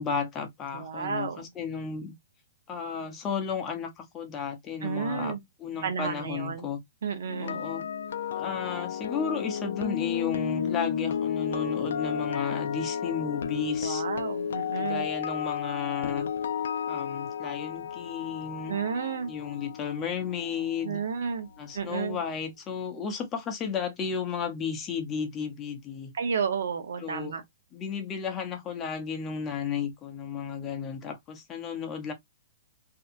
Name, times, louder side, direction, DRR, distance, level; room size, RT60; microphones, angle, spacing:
voice 1, 0.0-2.1 2.7-6.8 7.4-7.8 8.3-14.0 14.8-16.3 16.9-18.7 19.3-21.0 21.6-26.1 27.0-27.3 27.7-32.1, left 6 dB, 20° left, 0.8 m, -33 dB
voice 2, 0.7-1.4 4.8-5.4 5.8-6.7 7.0-7.6 13.8-15.1 18.7-19.3 20.8-21.5 21.7-22.2 26.1-27.4, right 6 dB, 75° right, 0.8 m, -31 dB
sound 1, 7.3-21.3 21.6-21.9, left 8 dB, 75° left, 0.4 m, -32 dB
2.7 x 2.3 x 2.5 m
hypercardioid pair, 140°, 0 cm